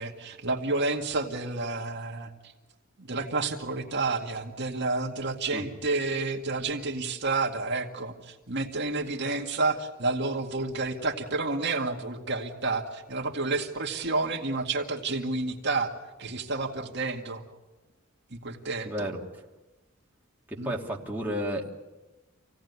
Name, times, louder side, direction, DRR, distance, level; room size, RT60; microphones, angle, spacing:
voice 1, 0.0-2.3 3.0-15.9 16.2-17.4 18.3-19.1 20.6-20.7, right 3 dB, 55° right, 2 dB, 2.1 m, -30 dB
voice 2, 18.9-19.2 20.6-21.7, equal, 10° right, -2 dB, 2.5 m, -32 dB
27.0 x 17.5 x 9.6 m, 1.1 s
head